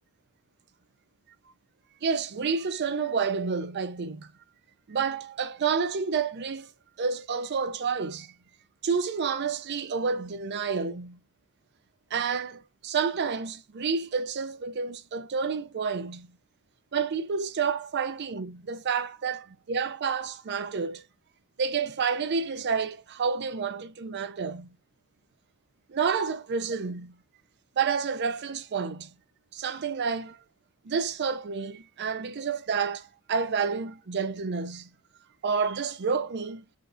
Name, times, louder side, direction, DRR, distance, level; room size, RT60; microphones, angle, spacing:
voice 1, 2.0-4.3 4.9-6.7 7.0-8.3 8.8-11.2 12.1-16.3 16.9-21.0 21.6-24.7 25.9-27.2 27.8-29.1 29.5-30.4 30.8-34.9 35.4-36.6, right 5 dB, 50° right, 0.5 m, -29 dB
5.0 x 3.6 x 2.6 m
head